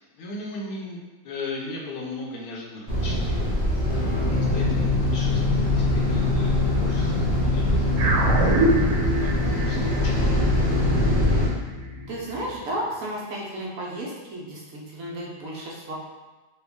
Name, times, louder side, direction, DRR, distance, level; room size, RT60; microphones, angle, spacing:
voice 1, 0.1-1.0 1.2-3.4 4.2-10.6, left 2 dB, 75° left, -2 dB, 1.1 m, -38 dB
sound 1, 2.9-11.5, equal, 5° left, 1.1 m, -24 dB
sound 2, 3.9-12.6, left 6 dB, 30° left, 0.6 m, -27 dB
sound 3, 8.0-12.6, right 2 dB, 85° right, 1.2 m, -25 dB
voice 2, 12.1-15.9, right 1 dB, 65° right, -4 dB, 1.1 m, -33 dB
3.3 x 2.3 x 3.5 m, 1.2 s
omnidirectional pair, 1.6 m